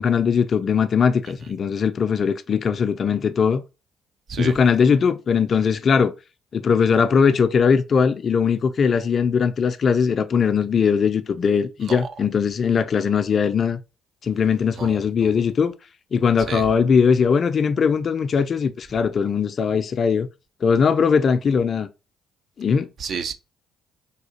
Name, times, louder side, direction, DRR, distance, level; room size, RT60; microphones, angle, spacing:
voice 1, 0.0-3.6 4.4-6.1 6.5-13.8 14.2-15.7 16.1-20.3 20.6-21.9 22.6-22.9, left 6 dB, 45° left, 0.4 m, -20 dB
voice 2, 14.8-15.3 16.5-16.6 23.0-23.3, right 6 dB, 50° right, 0.4 m, -30 dB
3.5 x 2.4 x 2.8 m
hypercardioid pair, 50°, 0 cm